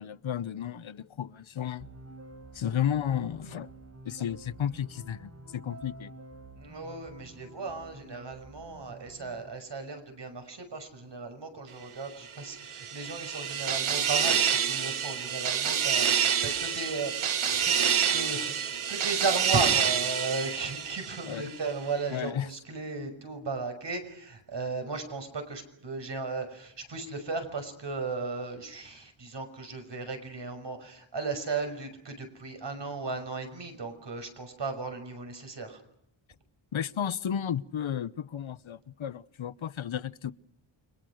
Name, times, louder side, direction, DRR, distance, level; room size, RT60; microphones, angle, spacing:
voice 1, 0.0-1.9 2.5-3.7 4.0-6.1 21.3-21.5 22.1-22.5 36.7-40.3, left 9 dB, 70° left, 1.0 m, -33 dB
sound 1, 1.8-9.5, right 2 dB, 30° right, 5.8 m, -49 dB
voice 2, 6.6-35.8, right 4 dB, 55° right, 6.1 m, -36 dB
sound 2, 12.4-21.6, right 7 dB, 75° right, 1.4 m, -28 dB
30.0 x 24.5 x 6.4 m
wide cardioid pair, 115°, 49 cm